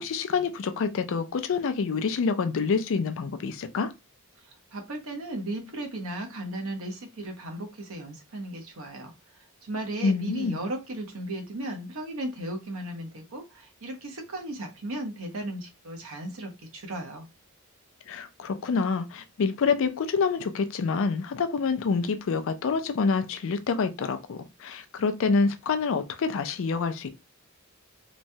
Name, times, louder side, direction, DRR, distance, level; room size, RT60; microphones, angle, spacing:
voice 1, 0.0-3.9 10.0-10.6 18.1-27.1, left 5 dB, 60° left, 0.4 m, -27 dB
voice 2, 4.7-9.1 9.6-17.3, right 1 dB, 65° right, 0.8 m, -36 dB
3.0 x 2.2 x 2.6 m
head